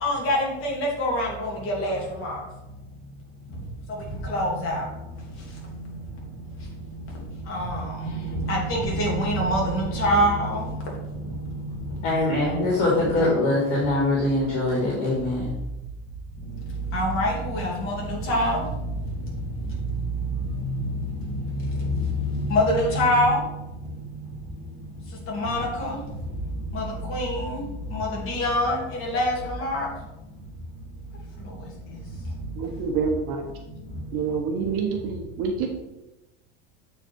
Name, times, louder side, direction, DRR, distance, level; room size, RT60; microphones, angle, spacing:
voice 1, 0.0-2.4 4.3-4.8 7.5-7.8 8.3-10.6 13.2-13.3 16.9-18.6 22.2-23.4 25.3-25.9 26.7-26.8 27.1-27.6 27.9-29.9, equal, 35° left, -2 dB, 2.6 m, -24 dB
voice 2, 12.0-15.5, left 2 dB, 65° left, -4 dB, 2.8 m, -23 dB
voice 3, 32.6-33.4 34.1-35.7, right 5 dB, 40° right, 3 dB, 0.9 m, -27 dB
7.9 x 4.8 x 4.5 m, 0.97 s
supercardioid pair, 155°, 34 cm